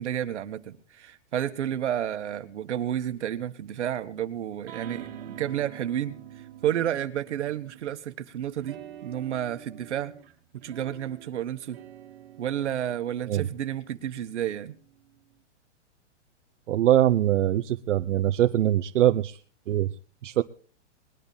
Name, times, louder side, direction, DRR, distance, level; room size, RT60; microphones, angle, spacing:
voice 1, 0.0-10.2 10.6-11.8 12.4-14.7, right 10 dB, 70° right, 9 dB, 1.7 m, -31 dB
sound 1, 4.7-8.0 8.6-15.4, right 10 dB, 55° right, 2.3 m, -47 dB
voice 2, 16.7-19.4 19.7-19.9 20.2-20.4, right 12 dB, 85° right, 7 dB, 0.9 m, -22 dB
21.0 x 11.0 x 3.4 m, 0.42 s
supercardioid pair, 180°, 35 cm